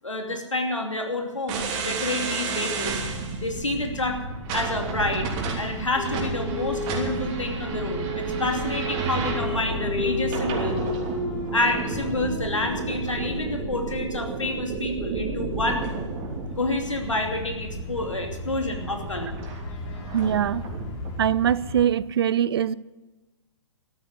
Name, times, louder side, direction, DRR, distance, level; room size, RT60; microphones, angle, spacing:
voice 1, 0.0-3.0 3.4-4.2 4.5-5.3 5.5-10.8 11.5-15.9 16.6-19.4, left 2 dB, 85° left, 2.8 m, -28 dB
sound 1, 1.5-21.2, right 3 dB, 30° right, 3.2 m, -31 dB
sound 2, 5.9-13.7 14.9-21.8, left 2 dB, 30° left, 3.8 m, -35 dB
voice 2, 20.1-20.6 21.2-22.7, right 9 dB, 55° right, 0.5 m, -22 dB
13.5 x 9.2 x 9.6 m
figure-of-eight pair, 120°, 15 cm